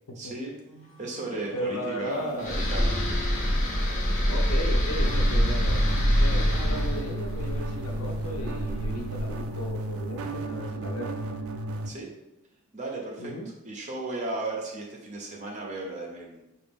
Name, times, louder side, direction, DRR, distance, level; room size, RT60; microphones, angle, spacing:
voice 1, 0.2-0.5 1.0-2.9 11.8-12.1 12.7-13.3 13.6-16.5, right 2 dB, 35° right, -1 dB, 0.8 m, -35 dB
sound 1, 0.7-11.4 11.7-11.8 12.7-12.8, left 1 dB, 10° right, 1.5 m, -47 dB
voice 2, 1.5-2.6 4.3-11.2 13.2-13.5, equal, 90° left, 2 dB, 0.7 m, -35 dB
sound 2, 2.4-9.6, equal, 35° left, 0.7 m, -25 dB
sound 3, 5.0-11.9, right 1 dB, 75° right, 0.4 m, -34 dB
4.8 x 2.5 x 3.5 m, 0.91 s
head